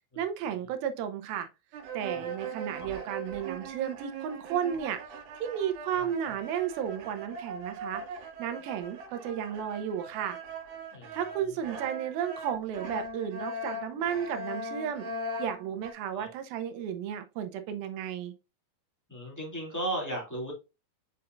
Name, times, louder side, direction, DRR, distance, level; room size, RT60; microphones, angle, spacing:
voice 1, 0.2-1.5 1.9-5.0 5.4-8.0 8.4-10.4 11.1-15.1 15.4-18.3, right 9 dB, 80° right, 2.5 m, -33 dB
sound 1, 1.7-15.9, right 2 dB, 65° right, 2.4 m, -40 dB
voice 2, 19.1-20.5, right 1 dB, 5° left, 1.8 m, -35 dB
7.8 x 5.3 x 2.5 m
omnidirectional pair, 4.4 m